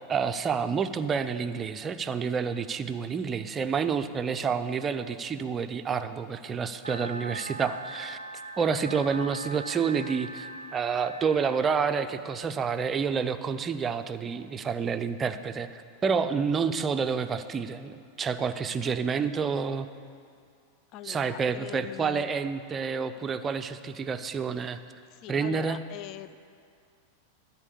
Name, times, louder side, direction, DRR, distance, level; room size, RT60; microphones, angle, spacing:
voice 1, 0.1-8.2 8.6-19.9 21.0-24.8 25.3-25.8, right 6 dB, 20° right, 10 dB, 0.5 m, -29 dB
sound 1, 6.8-11.8, right 2 dB, 85° right, 0.4 m, -41 dB
voice 2, 20.9-22.3 25.1-26.4, left 12 dB, 40° left, 13 dB, 0.4 m, -42 dB
13.0 x 4.5 x 8.3 m, 2.3 s
figure-of-eight pair, 90°, 0 cm